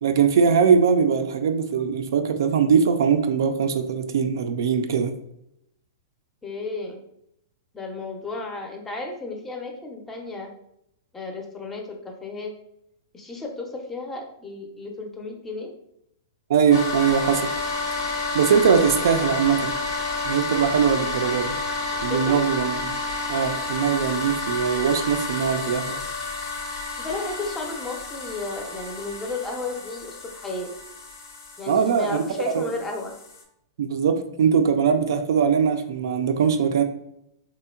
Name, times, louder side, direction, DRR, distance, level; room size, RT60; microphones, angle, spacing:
voice 1, 0.0-5.1 16.5-17.5 18.3-19.7 20.2-21.5 22.0-22.9 23.3-26.0 31.7-32.6 33.8-36.8, right 6 dB, 70° right, 7 dB, 0.3 m, -21 dB
voice 2, 6.4-7.0 7.7-10.5 11.1-12.5 13.1-15.7 22.1-22.4 27.0-30.7 31.6-33.1, left 3 dB, 15° left, 2 dB, 0.5 m, -33 dB
sound 1, 16.7-33.4, left 3 dB, 70° left, 0.6 m, -30 dB
2.8 x 2.1 x 2.3 m, 0.77 s
hypercardioid pair, 120°, 2 cm